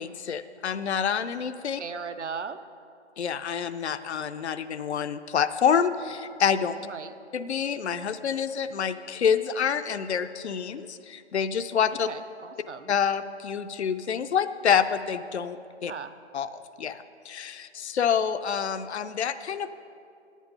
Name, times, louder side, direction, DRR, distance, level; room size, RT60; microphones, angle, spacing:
voice 1, 0.0-1.8 3.2-6.8 7.3-12.1 12.9-15.9 16.3-16.5 16.8-19.7, left 7 dB, 70° left, 11 dB, 0.5 m, -27 dB
voice 2, 1.8-2.6 6.8-7.3 12.0-12.9 15.9-16.1, right 6 dB, 75° right, 11 dB, 0.6 m, -37 dB
9.4 x 8.2 x 5.5 m, 2.6 s
figure-of-eight pair, 150°, 35 cm